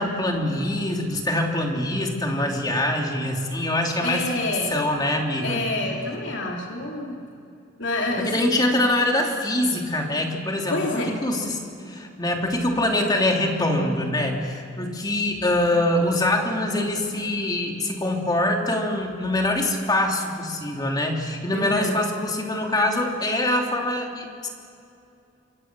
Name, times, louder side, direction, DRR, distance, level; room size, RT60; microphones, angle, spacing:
voice 1, 0.0-4.2 4.7-5.6 8.2-11.6 11.8-24.5, left 1 dB, 20° left, 1 dB, 3.1 m, -24 dB
voice 2, 4.0-4.7 5.4-7.2 7.8-8.3 10.7-11.1 21.5-22.0, left 2 dB, 65° left, -1 dB, 3.4 m, -27 dB
27.5 x 24.5 x 6.3 m, 2.6 s
head